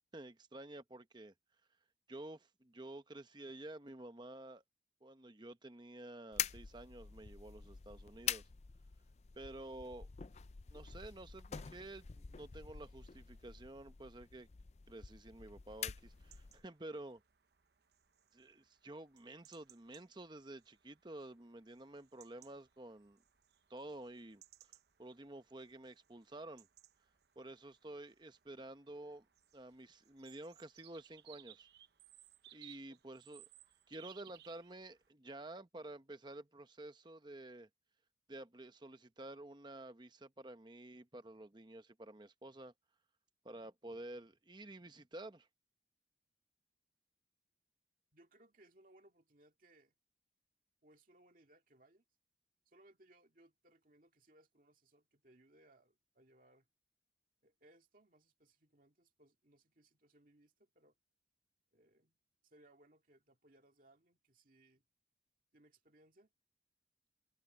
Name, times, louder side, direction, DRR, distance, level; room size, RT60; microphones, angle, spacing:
voice 1, 0.1-1.3 2.1-4.6 5.0-8.4 9.4-10.1 10.7-14.5 14.9-17.2 18.3-23.2 23.7-24.4 25.0-26.7 27.4-29.3 29.5-31.7 32.5-33.5 33.9-37.7 38.3-42.7 43.4-45.5, right 1 dB, 25° right, 0.9 m, -51 dB
sound 1, 6.3-16.7, left 9 dB, 35° left, 0.4 m, -46 dB
sound 2, 16.0-35.1, right 12 dB, 65° right, 0.9 m, -64 dB
voice 2, 48.1-49.9 50.8-52.0 52.7-56.7 57.4-60.9 61.7-62.2 62.4-64.8 65.5-66.3, right 1 dB, 50° right, 2.2 m, -67 dB
head